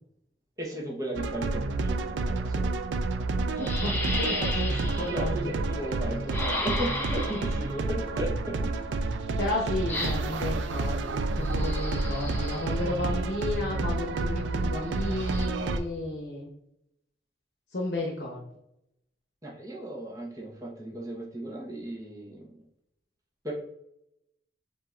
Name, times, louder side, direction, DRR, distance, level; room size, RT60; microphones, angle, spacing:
voice 1, 0.6-2.7 4.9-8.7 19.4-22.6 23.4-23.5, right 1 dB, 20° right, -2 dB, 1.0 m, -36 dB
sound 1, 1.2-15.8, right 3 dB, 85° right, 0.4 m, -29 dB
voice 2, 3.4-5.5 9.4-16.5 17.7-18.4, left 2 dB, 65° left, -3 dB, 0.8 m, -33 dB
sound 2, 3.6-5.3 6.3-7.7 9.9-10.4 11.4-12.8 15.0-15.5, left 2 dB, 10° left, 0.6 m, -34 dB
7.4 x 2.7 x 2.5 m, 0.78 s
head